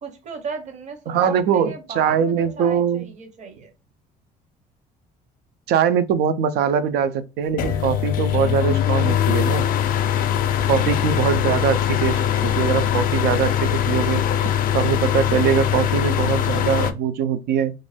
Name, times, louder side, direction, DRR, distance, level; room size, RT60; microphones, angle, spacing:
voice 1, 0.0-3.7, right 5 dB, 45° right, 0.7 m, -36 dB
voice 2, 1.1-3.1 5.7-9.7 10.7-14.2 14.7-17.7, right 8 dB, 75° right, 0.4 m, -22 dB
sound 1, 7.6-16.9, left 10 dB, 60° left, 0.4 m, -21 dB
2.5 x 2.2 x 3.2 m
cardioid pair, 110°, 17 cm